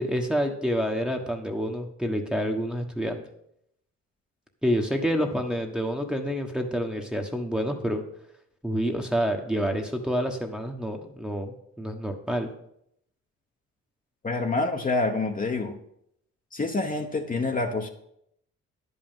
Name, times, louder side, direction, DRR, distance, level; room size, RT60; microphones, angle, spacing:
voice 1, 0.0-3.2 4.6-8.0 8.6-12.5, equal, 5° right, 2 dB, 1.2 m, -28 dB
voice 2, 14.2-15.8 16.5-17.9, left 3 dB, 25° left, 3 dB, 1.1 m, -27 dB
10.5 x 5.5 x 7.4 m, 0.75 s
cardioid pair, 90°, 30 cm